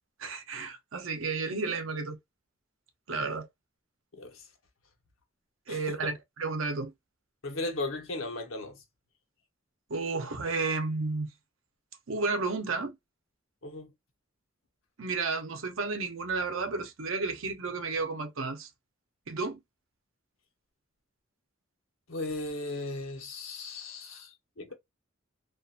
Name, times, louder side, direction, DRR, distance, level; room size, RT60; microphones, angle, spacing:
voice 1, 0.2-2.2 3.1-3.5 5.7-6.9 9.9-11.3 12.1-13.0 15.0-18.7 19.3-19.6, right 4 dB, 90° right, 0.7 m, -32 dB
voice 2, 4.1-4.5 5.7-6.2 7.4-8.8 13.6-13.9 22.1-24.7, left 2 dB, 80° left, 1.0 m, -37 dB
2.5 x 2.4 x 2.5 m
head